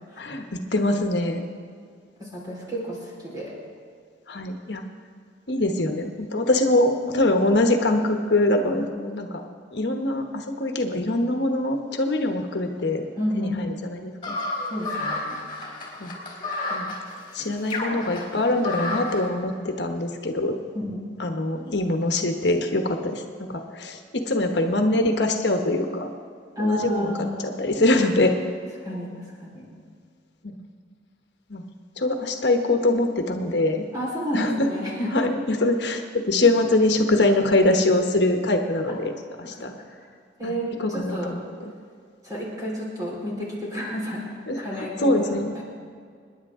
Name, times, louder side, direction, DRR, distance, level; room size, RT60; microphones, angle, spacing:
voice 1, 0.7-1.4 4.3-4.8 5.5-9.4 9.7-13.0 13.4-14.4 16.0-16.2 16.7-16.9 17.3-20.6 21.2-26.1 26.6-27.1 27.4-28.3 30.4-30.6 31.5-31.7 32.0-33.8 34.3-34.7 35.1-39.1 39.4-39.7 40.4-40.5 40.8-41.7 44.5-45.5, left 2 dB, 70° left, 4 dB, 1.2 m, -23 dB
voice 2, 2.2-3.5 13.2-13.6 14.7-15.3 20.7-21.1 26.6-27.5 28.8-29.7 33.9-35.1 40.4-41.3 42.2-44.3 44.6-45.6, equal, 20° right, -5 dB, 4.1 m, -30 dB
sound 1, 14.2-19.2, left 2 dB, 25° left, 3.9 m, -31 dB
27.5 x 10.5 x 3.7 m, 2.1 s
head